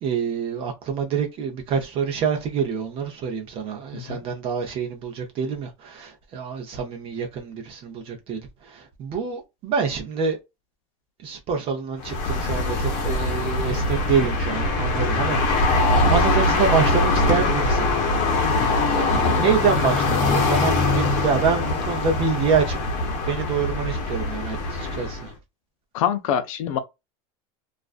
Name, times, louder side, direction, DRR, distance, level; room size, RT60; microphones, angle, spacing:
voice 1, 0.0-10.4 11.2-17.9 18.6-22.8 23.3-25.3, right 6 dB, 35° right, 0.6 m, -26 dB
sound 1, 12.0-25.3, left 2 dB, 55° left, 0.8 m, -22 dB
voice 2, 18.4-18.7 25.9-26.8, left 9 dB, 85° left, 0.5 m, -25 dB
2.4 x 2.1 x 2.4 m
supercardioid pair, 160°, 17 cm